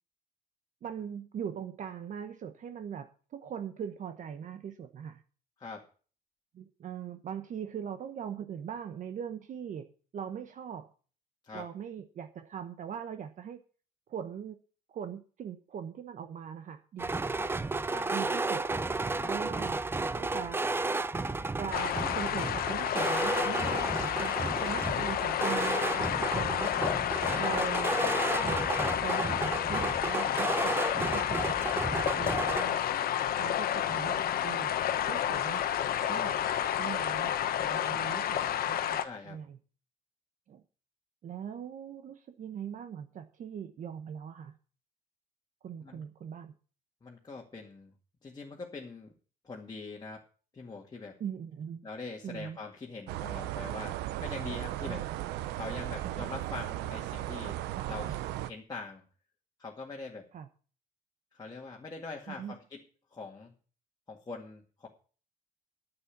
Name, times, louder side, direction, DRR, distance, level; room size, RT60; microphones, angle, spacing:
voice 1, 0.8-5.2 6.5-10.9 11.5-13.6 14.1-14.6 14.9-17.1 18.1-18.7 19.3-19.9 20.1-20.6 21.6-26.7 27.4-28.7 29.0-31.6 31.9-32.9 33.4-34.7 35.1-35.6 36.1-36.4 36.8-39.6 40.5-40.6 41.2-44.5 45.6-46.5 51.2-51.8 52.2-52.6 54.9-55.0 56.0-56.2 57.7-58.2 60.3-60.5 62.3-62.5, right 8 dB, 50° right, 1.0 m, -41 dB
sound 1, 17.0-32.6, right 3 dB, 15° right, 0.5 m, -33 dB
voice 2, 19.2-19.5 27.3-27.6 32.1-32.4 37.9-38.1 39.0-39.4 45.8-46.0 47.0-47.9 48.2-49.1 49.4-50.2 50.5-51.2 51.8-55.0 55.5-57.6 57.9-58.2 58.5-59.0 59.6-60.3 61.3-62.8 63.1-63.5 64.1-64.9, left 3 dB, 25° left, 2.0 m, -43 dB
sound 2, 21.7-39.0, left 10 dB, 60° left, 1.2 m, -30 dB
sound 3, 53.1-58.5, right 14 dB, 90° right, 0.7 m, -36 dB
9.8 x 8.1 x 8.2 m
cardioid pair, 110°, 17 cm